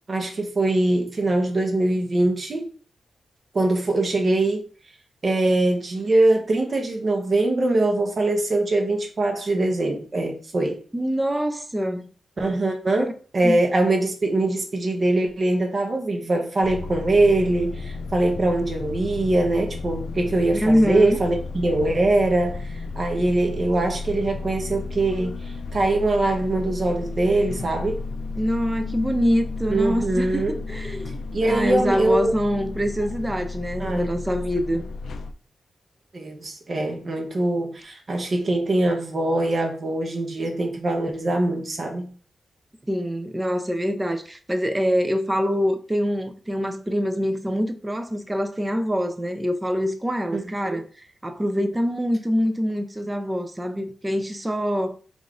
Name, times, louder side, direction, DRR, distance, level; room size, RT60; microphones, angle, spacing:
voice 1, 0.1-2.7 3.5-4.7 5.2-10.8 12.4-28.0 29.7-30.6 31.3-32.3 33.8-34.1 36.1-42.1 50.3-50.8, right 2 dB, 40° right, 0.9 m, -22 dB
voice 2, 10.9-12.1 13.0-13.1 13.4-13.6 20.5-21.2 28.4-34.8 42.9-50.8 51.2-55.0, equal, 10° right, 0.5 m, -24 dB
sound 1, 16.6-35.3, left 3 dB, 70° left, 0.4 m, -33 dB
5.0 x 2.5 x 3.7 m
wide cardioid pair, 165°, 0 cm